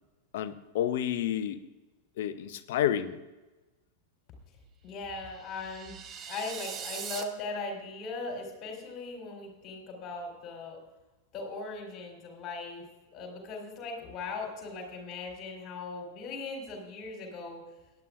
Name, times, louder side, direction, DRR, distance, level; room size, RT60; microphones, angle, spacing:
voice 1, 0.3-1.6 2.2-3.2, left 10 dB, 55° left, 12 dB, 0.7 m, -30 dB
voice 2, 4.8-5.9 6.3-10.8 11.3-12.9 13.1-17.6, left 3 dB, 30° left, 1 dB, 3.8 m, -39 dB
sound 1, 5.2-7.2, right 7 dB, 25° right, 0.9 m, -41 dB
18.0 x 10.5 x 2.5 m, 1.1 s
figure-of-eight pair, 90°, 0 cm